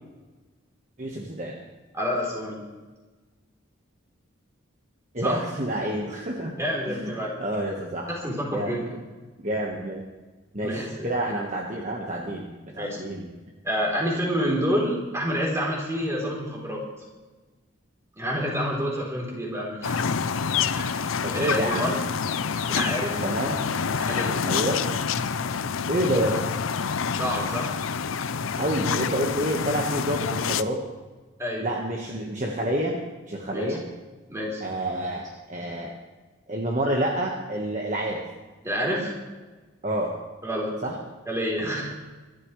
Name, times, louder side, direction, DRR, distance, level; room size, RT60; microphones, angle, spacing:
voice 1, 1.0-1.6 5.1-6.5 6.9-7.1 7.4-8.1 8.5-8.7 9.4-10.0 10.5-12.5 12.7-13.3 21.2-21.9 23.2-23.6 24.4-24.8 25.9-26.4 28.5-30.8 31.6-32.9 33.3-33.8 34.6-35.9 36.5-38.2 39.8-40.1 40.8-40.9, right 1 dB, 35° right, -1 dB, 1.5 m, -28 dB
voice 2, 1.9-2.6 5.2-5.4 6.6-7.4 8.1-8.9 10.6-11.1 12.8-13.0 13.6-16.8 18.2-20.0 20.8-22.0 22.7-23.2 23.9-24.4 27.1-27.8 31.4-31.7 33.5-33.8 34.3-34.6 38.6-39.2 40.4-40.8 41.3-41.9, equal, 15° right, -3 dB, 3.6 m, -28 dB
sound 1, 19.8-30.6, left 6 dB, 80° left, 0.6 m, -27 dB
25.0 x 12.0 x 3.3 m, 1.3 s
head